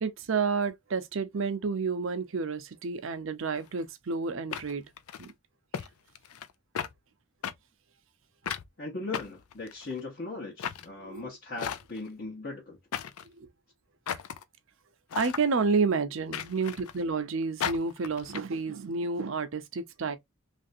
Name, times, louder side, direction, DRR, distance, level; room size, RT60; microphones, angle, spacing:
voice 1, 0.0-4.8 5.2-5.3 11.0-11.3 13.4-13.5 15.1-20.2, right 4 dB, 65° right, 0.6 m, -30 dB
sound 1, 3.6-3.7 4.5-5.3 5.7-5.9 6.2-6.5 6.8-6.9 7.4-7.5 8.5-8.7 9.1-10.0 10.6-10.9 11.6-12.1 12.9-13.3 14.1-14.4 15.1-15.4 16.3-17.0 17.6-18.4, left 8 dB, 85° left, 0.4 m, -35 dB
voice 2, 8.8-12.8, left 3 dB, 45° left, 0.8 m, -38 dB
3.2 x 2.5 x 2.6 m
head